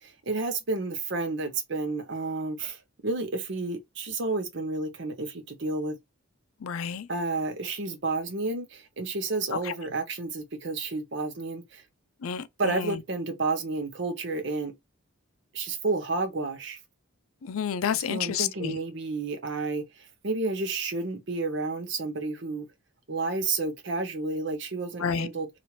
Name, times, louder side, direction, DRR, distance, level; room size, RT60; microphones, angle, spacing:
voice 1, 0.0-2.8 3.0-6.0 7.1-11.8 12.6-14.7 15.5-16.8 18.1-22.7 23.1-25.5, right 3 dB, 55° right, 0.7 m, -31 dB
voice 2, 6.6-7.1 9.7-9.8 12.2-13.0 17.4-18.8 25.0-25.3, left 8 dB, 80° left, 0.4 m, -30 dB
3.0 x 2.5 x 2.7 m
head